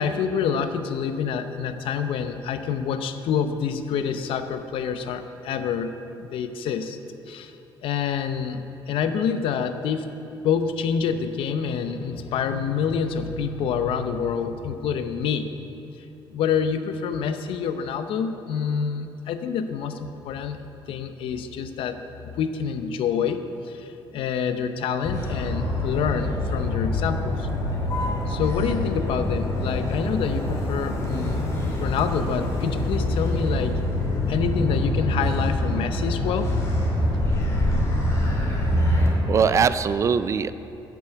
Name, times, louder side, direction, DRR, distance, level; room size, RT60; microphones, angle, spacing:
voice 1, 0.0-7.0 7.3-7.5 7.8-10.1 10.4-15.5 16.3-20.6 20.9-22.0 22.3-27.5 28.3-31.4 31.7-33.8 34.3-36.5 37.5-37.6, left 7 dB, 75° left, 9 dB, 0.7 m, -27 dB
Motor vehicle (road), 25.0-39.1, left 1 dB, 30° left, 2.4 m, -25 dB
voice 2, 38.9-40.5, right 6 dB, 35° right, 14 dB, 0.4 m, -22 dB
11.5 x 6.1 x 8.1 m, 2.8 s
cardioid pair, 130°, 9 cm